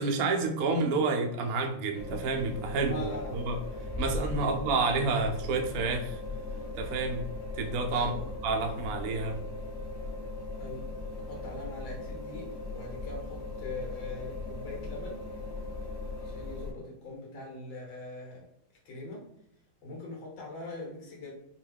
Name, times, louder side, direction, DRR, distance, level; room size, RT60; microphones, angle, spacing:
voice 1, 0.0-3.6 4.0-6.2 6.7-7.3 7.6-8.1 8.4-9.4, right 3 dB, 70° right, 3 dB, 0.8 m, -29 dB
sound 1, 1.9-16.7, left 2 dB, 45° left, 0.9 m, -38 dB
voice 2, 2.9-3.6 4.3-4.6 5.0-5.2 7.9-8.3 10.6-10.9 11.2-15.3 16.2-18.5 18.9-19.3 19.8-21.3, left 2 dB, 65° left, -1 dB, 2.0 m, -42 dB
5.5 x 2.3 x 3.5 m, 0.74 s
omnidirectional pair, 2.3 m